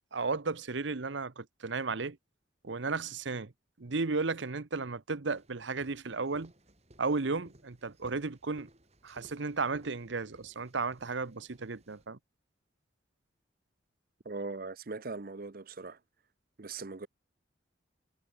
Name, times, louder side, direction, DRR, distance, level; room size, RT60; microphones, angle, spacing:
voice 1, 0.0-2.2 2.6-3.5 3.8-6.5 7.0-8.7 9.0-12.2, right 4 dB, 75° right, 0.9 m, -34 dB
sound 1, 5.3-12.1, right 1 dB, 35° right, 7.0 m, -60 dB
voice 2, 14.2-16.0 16.6-17.1, right 3 dB, 50° right, 0.8 m, -40 dB
head